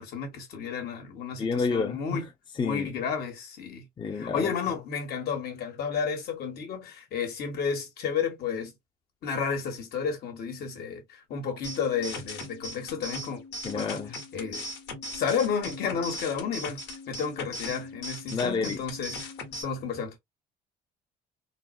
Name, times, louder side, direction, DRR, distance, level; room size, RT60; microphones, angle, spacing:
voice 1, 0.0-2.3 2.6-3.9 4.1-8.7 9.2-13.4 13.7-14.0 14.3-14.6 15.1-16.8 17.1-20.2, left 6 dB, 65° left, 1.5 m, -32 dB
voice 2, 1.4-2.3 2.6-2.9 4.0-4.5 13.6-14.1 18.3-18.8, left 4 dB, 25° left, 0.7 m, -29 dB
sound 1, 11.6-19.6, left 1 dB, 85° left, 1.4 m, -39 dB
3.9 x 2.1 x 2.6 m
cardioid pair, 110°, 17 cm